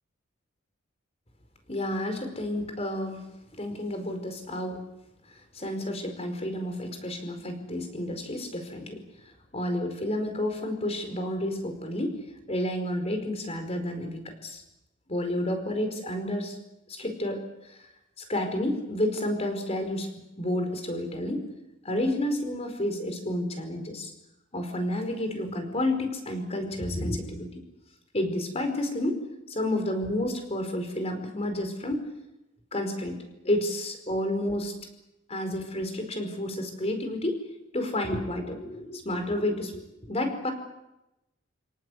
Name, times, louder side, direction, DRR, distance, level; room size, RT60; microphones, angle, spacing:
voice 1, 1.7-3.2 3.6-4.8 5.5-9.0 9.5-12.2 12.5-14.6 15.1-16.6 16.9-17.4 17.7-17.8 18.3-20.1 20.4-21.5 21.8-24.1 24.5-27.6 28.1-29.2 29.5-32.0 32.7-34.7 35.3-37.4 37.7-40.5, left 1 dB, 30° left, 6 dB, 4.9 m, -30 dB
30.0 x 18.5 x 8.3 m, 0.93 s
head